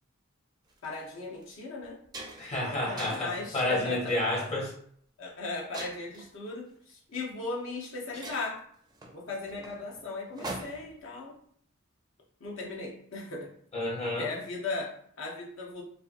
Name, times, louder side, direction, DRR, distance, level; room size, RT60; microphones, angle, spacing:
sound 1, 0.7-0.9 1.4-1.5 1.8-2.6 3.0-3.4 4.1-4.4 5.7-6.3 7.4-7.5 7.8-7.9 8.2-11.0, right 2 dB, 20° right, 0.4 m, -42 dB
voice 1, 0.8-2.0 2.5-4.2 5.2-8.6 9.1-11.4 12.4-13.5 14.2-15.8, left 3 dB, 70° left, -2 dB, 0.8 m, -37 dB
voice 2, 2.4-4.7 13.7-14.3, left 1 dB, 30° left, -3 dB, 0.8 m, -30 dB
2.7 x 2.5 x 2.4 m, 0.63 s
head